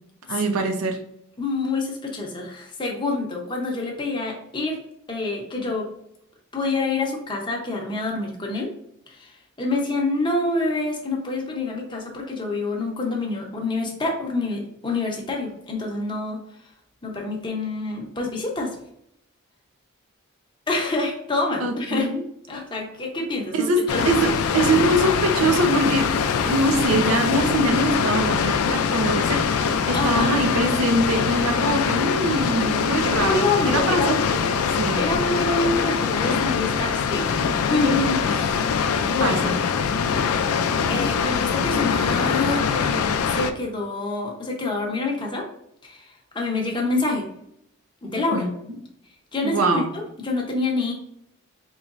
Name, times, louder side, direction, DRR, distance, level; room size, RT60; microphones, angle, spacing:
voice 1, 0.3-1.0 21.6-22.2 23.5-26.1 26.4-34.2 34.5-35.0 39.2-39.6 48.3-48.5 49.4-49.9, right 2 dB, 75° right, 5 dB, 0.6 m, -23 dB
voice 2, 1.4-4.8 5.1-5.9 6.5-8.7 9.1-16.4 17.0-18.8 20.7-22.1 22.5-24.1 29.9-30.3 33.0-34.2 34.9-39.4 40.9-45.5 45.8-47.3 48.0-48.5 49.3-50.9, left 2 dB, 20° left, -1 dB, 0.7 m, -27 dB
Water, 23.9-43.5, left 6 dB, 80° left, 0.3 m, -23 dB
3.9 x 3.1 x 2.4 m, 0.74 s
head